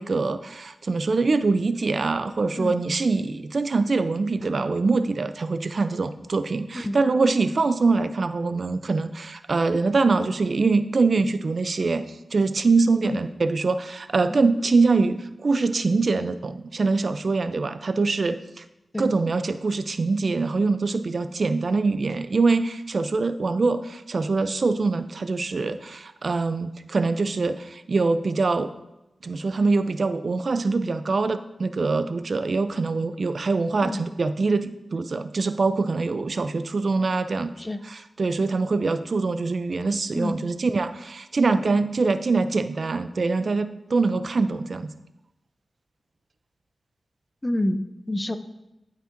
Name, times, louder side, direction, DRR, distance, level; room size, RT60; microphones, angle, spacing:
voice 1, 0.0-18.6 19.0-28.7 29.2-37.5 37.8-44.9, right 3 dB, 60° right, 11 dB, 0.4 m, -24 dB
voice 2, 47.4-47.8 48.1-48.4, left 1 dB, 20° left, 10 dB, 0.5 m, -27 dB
11.0 x 5.3 x 2.5 m, 0.92 s
cardioid pair, 45°, 0 cm